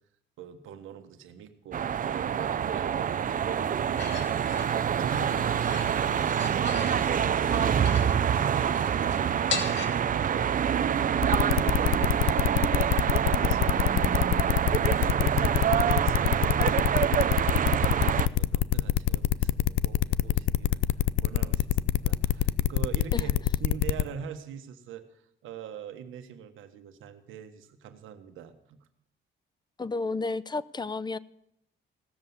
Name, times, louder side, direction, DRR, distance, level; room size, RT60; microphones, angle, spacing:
voice 1, 0.4-4.7 5.0-17.3 17.8-20.8 21.2-23.3 23.6-28.8, right 8 dB, 85° right, 8 dB, 1.4 m, -43 dB
sound 1, 1.7-18.3, right 8 dB, 45° right, 0.6 m, -26 dB
sound 2, 4.0-9.9, left 5 dB, 65° left, 2.4 m, -39 dB
sound 3, 11.2-24.1, left 13 dB, 85° left, 0.5 m, -25 dB
voice 2, 29.8-31.2, left 3 dB, 20° left, 19 dB, 0.6 m, -31 dB
16.5 x 7.1 x 9.6 m, 0.76 s
cardioid pair, 90°, 20 cm